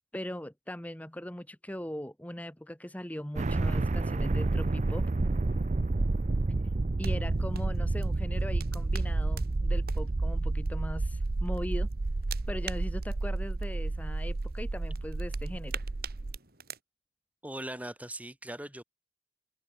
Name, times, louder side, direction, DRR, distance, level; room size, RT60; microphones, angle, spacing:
voice 1, 0.1-5.1 7.0-11.9 12.5-15.8, equal, 10° left, 1.4 m, -40 dB
sound 1, 3.4-16.4, right 2 dB, 40° right, 0.5 m, -30 dB
sound 2, 7.0-16.8, right 8 dB, 55° right, 6.9 m, -48 dB
voice 2, 17.4-18.8, right 1 dB, 10° right, 4.3 m, -40 dB
open air
head